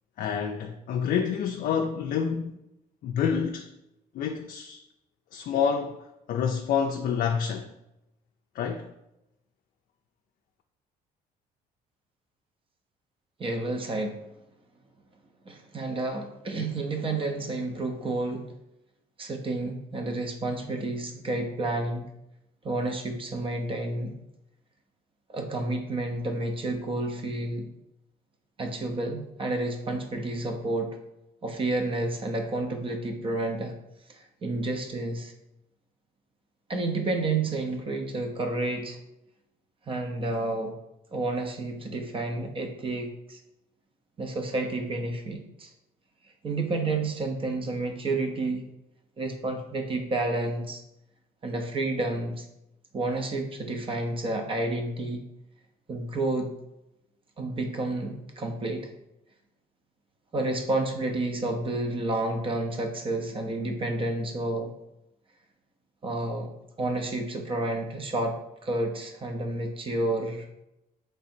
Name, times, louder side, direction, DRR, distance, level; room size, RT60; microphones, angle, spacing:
voice 1, 0.2-2.6 3.0-3.7 4.1-4.8 5.3-6.0 6.3-7.7 8.5-8.9, left 7 dB, 55° left, 0.4 m, -28 dB
voice 2, 13.4-14.2 15.5-18.5 19.2-22.1 22.6-24.1 25.3-27.7 28.6-31.0 31.4-33.7 34.1-35.3 36.7-39.0 39.9-40.7 41.1-43.4 44.2-45.7 46.4-48.6 49.2-50.8 51.4-52.5 52.9-55.2 55.9-56.5 57.4-58.9 60.3-64.7 66.0-66.5 66.8-70.5, right 2 dB, 30° right, 0.7 m, -30 dB
3.7 x 3.3 x 4.3 m
cardioid pair, 110°, 17 cm